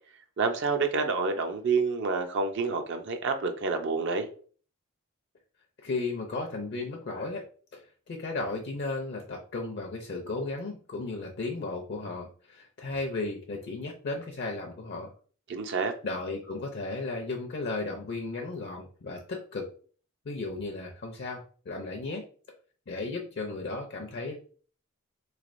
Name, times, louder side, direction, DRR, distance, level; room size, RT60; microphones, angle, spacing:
voice 1, 0.4-4.3 15.5-15.9, right 4 dB, 55° right, 0.5 m, -28 dB
voice 2, 5.8-7.5 7.7-7.8 8.1-15.1 16.0-19.7 20.3-22.2 22.9-24.4, left 3 dB, 50° left, 0.5 m, -35 dB
3.3 x 3.2 x 2.5 m
head